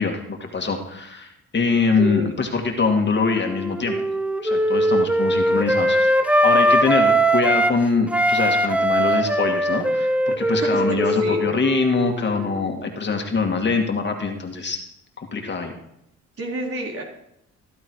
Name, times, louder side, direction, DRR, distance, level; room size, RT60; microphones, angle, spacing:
voice 1, 0.0-4.0 4.4-14.8 15.3-15.7, left 4 dB, 35° left, 3 dB, 2.2 m, -23 dB
voice 2, 2.0-2.3 10.5-11.4 16.4-17.0, right 1 dB, 50° right, -1 dB, 4.2 m, -29 dB
Wind instrument woodwind instrument, 3.2-7.8 8.1-12.6, right 1 dB, 5° right, 1.0 m, -20 dB
15.5 x 11.5 x 4.8 m, 0.79 s
cardioid pair, 90°, 30 cm